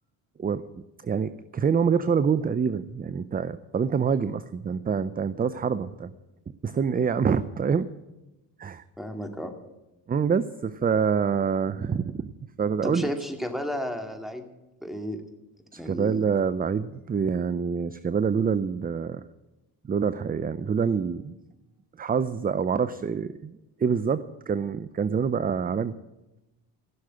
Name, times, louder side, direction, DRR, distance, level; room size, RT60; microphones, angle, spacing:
voice 1, 1.0-6.1 6.6-7.9 8.6-8.8 10.1-12.3 12.6-13.1 15.7-19.2 19.9-21.3 22.0-26.0, right 6 dB, 20° right, 15 dB, 0.5 m, -26 dB
voice 2, 9.0-9.5 12.8-14.5 14.8-15.2 15.8-16.2, equal, ahead, 5 dB, 2.2 m, -33 dB
15.5 x 6.5 x 9.7 m, 1.0 s
supercardioid pair, 65°, 45 cm